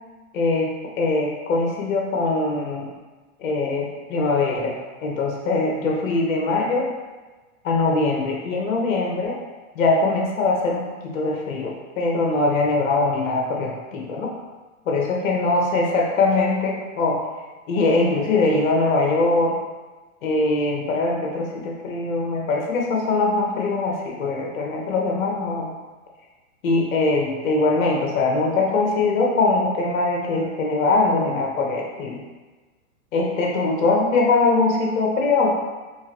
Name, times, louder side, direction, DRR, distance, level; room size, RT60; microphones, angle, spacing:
voice 1, 0.3-2.9 3.4-4.7 5.0-6.9 7.6-9.4 9.7-14.3 14.9-17.2 17.7-19.6 20.2-25.7 26.6-32.2 33.1-35.5, left 3 dB, 65° left, 0 dB, 1.1 m, -22 dB
4.6 x 2.6 x 3.0 m, 1.2 s
hypercardioid pair, 140°, 43 cm